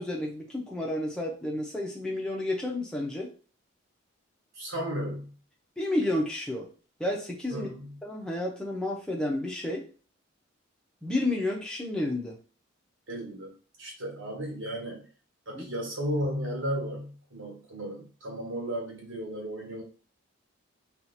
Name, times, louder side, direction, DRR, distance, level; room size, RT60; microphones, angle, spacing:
voice 1, 0.0-3.3 5.8-6.7 7.0-7.7 8.0-9.8 11.0-12.4 15.5-15.6, left 1 dB, 5° left, -1 dB, 0.7 m, -31 dB
voice 2, 4.6-5.3 7.5-7.9 13.1-13.5 13.8-15.1 15.5-19.8, equal, 65° right, -1 dB, 1.4 m, -34 dB
2.8 x 2.4 x 4.1 m, 0.39 s
head